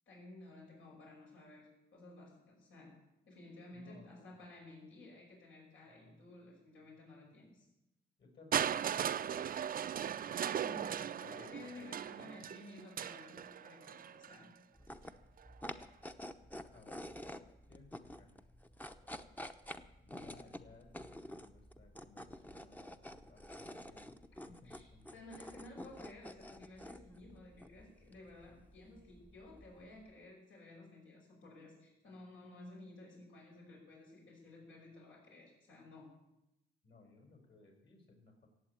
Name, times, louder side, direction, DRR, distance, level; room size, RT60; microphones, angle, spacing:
voice 1, 0.1-3.0 3.3-7.7 10.5-14.5 24.5-36.2, left 2 dB, 80° left, -2 dB, 5.7 m, -54 dB
voice 2, 3.7-4.4 8.2-10.5 10.7-11.0 11.2-12.3 16.6-17.3 17.7-18.4 19.0-19.1 20.0-25.4 36.8-38.5, left 3 dB, 55° left, 2 dB, 5.7 m, -62 dB
Crushing, 8.5-14.4 15.4-15.5, right 9 dB, 45° right, 0.5 m, -38 dB
sound 1, 14.7-30.1, left 1 dB, 10° left, 0.8 m, -50 dB
15.5 x 8.3 x 8.6 m, 0.90 s
cardioid pair, 90°, 20 cm